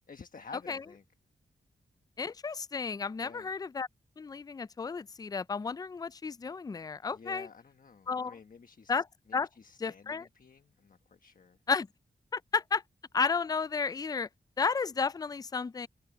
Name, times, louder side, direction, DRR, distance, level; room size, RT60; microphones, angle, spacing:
voice 1, 0.1-1.0 3.2-3.5 7.1-11.6, left 5 dB, 50° left, 1.2 m, -51 dB
voice 2, 2.2-3.9 4.2-7.5 8.1-8.3 8.9-9.0 9.3-9.5 9.8-10.3 11.7-11.9 12.3-12.8 13.1-14.3 14.6-15.9, left 5 dB, 20° left, 0.3 m, -32 dB
wide cardioid pair, 100°, 18 cm